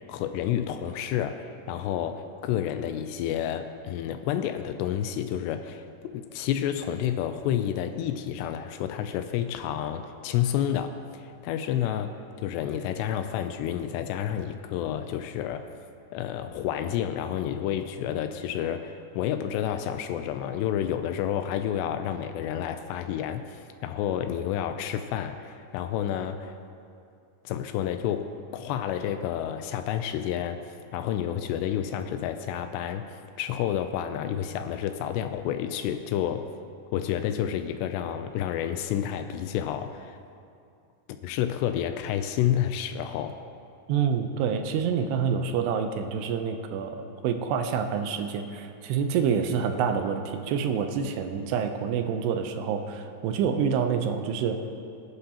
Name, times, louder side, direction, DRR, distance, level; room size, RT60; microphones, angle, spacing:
voice 1, 0.1-15.7 16.1-26.5 27.5-33.1 33.4-36.5 36.9-40.2 41.2-43.4, left 10 dB, 85° left, 8 dB, 2.7 m, -30 dB
voice 2, 43.9-54.6, right 7 dB, 80° right, 6 dB, 2.7 m, -27 dB
22.5 x 11.5 x 2.9 m, 2.5 s
omnidirectional pair, 4.9 m